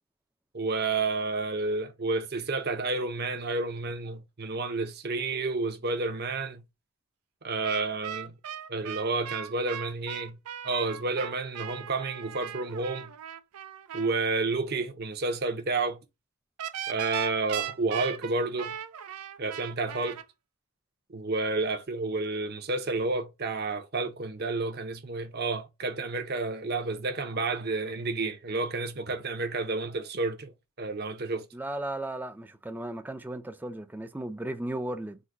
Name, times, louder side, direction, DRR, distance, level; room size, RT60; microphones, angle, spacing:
voice 1, 0.5-6.6 7.4-8.3 8.7-10.4 10.6-13.1 13.9-16.0 16.9-18.7 19.4-20.2 21.1-30.5 30.8-31.5, right 3 dB, 45° right, 0.7 m, -30 dB
sound 1, 7.6-14.1 16.6-20.2, right 9 dB, 80° right, 0.5 m, -38 dB
voice 2, 31.5-35.2, right 1 dB, 10° right, 0.4 m, -35 dB
3.9 x 2.2 x 4.5 m
head